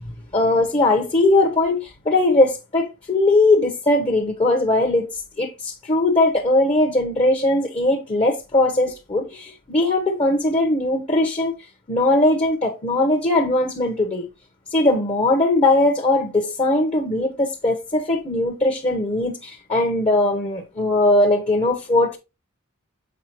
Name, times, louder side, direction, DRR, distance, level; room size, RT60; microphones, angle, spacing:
voice 1, 0.3-5.1 5.4-11.5 11.9-14.2 14.7-22.2, left 2 dB, 25° left, 1.0 m, -19 dB
7.3 x 4.9 x 3.0 m
head